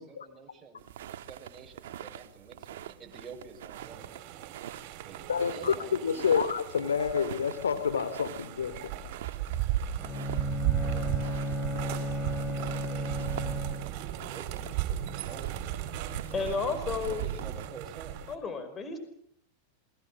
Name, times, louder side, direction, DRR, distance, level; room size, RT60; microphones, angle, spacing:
voice 1, 0.0-4.2 5.0-6.4 10.3-10.5 10.9-11.1 12.3-15.8 16.8-18.3, right 5 dB, 25° right, 2 dB, 6.0 m, -49 dB
sound 1, 0.8-17.7, right 11 dB, 70° right, 1.5 m, -43 dB
sound 2, 3.7-18.4, right 11 dB, 55° right, 4.9 m, -36 dB
voice 2, 5.3-5.7 6.0-8.9, left 7 dB, 85° left, 11 dB, 2.9 m, -28 dB
Bowed string instrument, 10.0-14.1, equal, 10° left, 3.9 m, -34 dB
voice 3, 16.3-17.3 18.3-19.0, left 4 dB, 25° left, 9 dB, 5.1 m, -32 dB
28.5 x 22.5 x 7.5 m, 0.68 s
hypercardioid pair, 100°, 0 cm